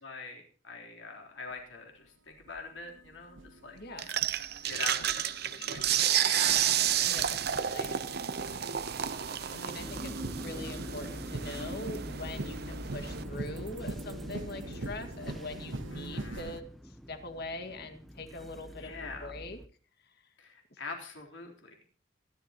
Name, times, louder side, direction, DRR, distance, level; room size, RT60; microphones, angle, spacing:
voice 1, 0.0-4.3 4.7-7.1 8.1-8.6 9.1-10.0 15.9-16.5 18.8-19.3 20.4-21.7, left 4 dB, 70° left, 2 dB, 3.7 m, -45 dB
sound 1, 1.5-1.6 2.3-16.6, right 2 dB, 70° right, 1.1 m, -43 dB
voice 2, 3.7-4.1 7.0-8.0 9.5-19.6, left 2 dB, 55° left, 7 dB, 1.9 m, -43 dB
sound 2, 4.0-13.2, right 10 dB, 55° right, 0.8 m, -31 dB
sound 3, 9.8-19.7, equal, ahead, 0.8 m, -45 dB
25.0 x 12.0 x 3.0 m, 0.40 s
head